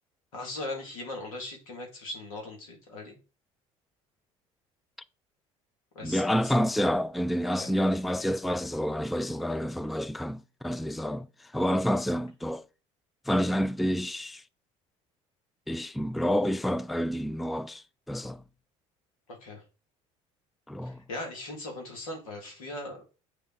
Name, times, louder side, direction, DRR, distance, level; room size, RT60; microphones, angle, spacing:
voice 1, 0.3-3.2 5.9-6.7 7.5-7.7 19.4-19.6 20.8-23.0, left 2 dB, 85° left, 2.4 m, -39 dB
voice 2, 6.0-12.6 13.3-14.4 15.7-18.4 20.7-21.0, equal, ahead, 0.3 m, -29 dB
8.2 x 3.6 x 4.5 m
hypercardioid pair, 75°, 17 cm